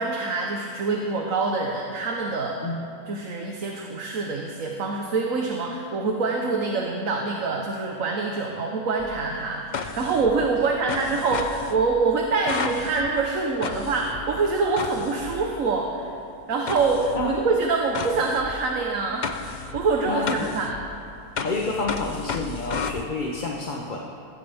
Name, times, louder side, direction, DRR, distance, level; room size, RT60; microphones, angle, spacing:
voice 1, 0.0-2.7 3.1-16.1 16.5-20.8, right 4 dB, 60° right, 1 dB, 1.5 m, -25 dB
sound 1, 9.0-15.8 16.7-23.0, left 5 dB, 55° left, 0.4 m, -34 dB
voice 2, 20.0-20.5 21.4-24.0, left 2 dB, 35° left, -1 dB, 1.1 m, -29 dB
20.5 x 15.5 x 3.5 m, 2.7 s
omnidirectional pair, 1.7 m